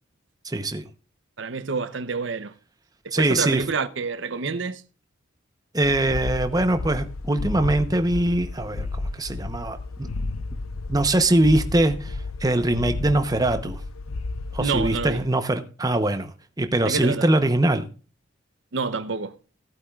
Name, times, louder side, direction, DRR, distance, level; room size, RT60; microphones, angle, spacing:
voice 1, 0.4-0.8 3.1-3.6 5.7-10.1 10.9-13.8 14.5-16.3 16.6-17.8, right 1 dB, 20° right, 0.8 m, -22 dB
voice 2, 1.4-2.5 3.0-4.8 14.6-15.2 16.8-17.3 18.7-19.3, right 4 dB, 60° right, 0.7 m, -28 dB
sound 1, 5.8-15.3, left 3 dB, 90° left, 0.6 m, -32 dB
18.0 x 8.6 x 2.4 m
head